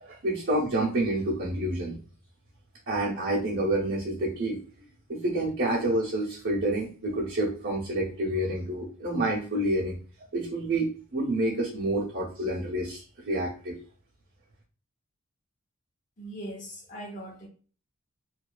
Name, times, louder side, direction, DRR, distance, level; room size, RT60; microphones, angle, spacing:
voice 1, 0.0-2.0 2.9-4.6 5.1-10.0 10.3-13.8, right 1 dB, 60° right, 0.9 m, -28 dB
voice 2, 16.2-17.5, right 1 dB, 35° left, 0.7 m, -40 dB
2.7 x 2.4 x 2.3 m
head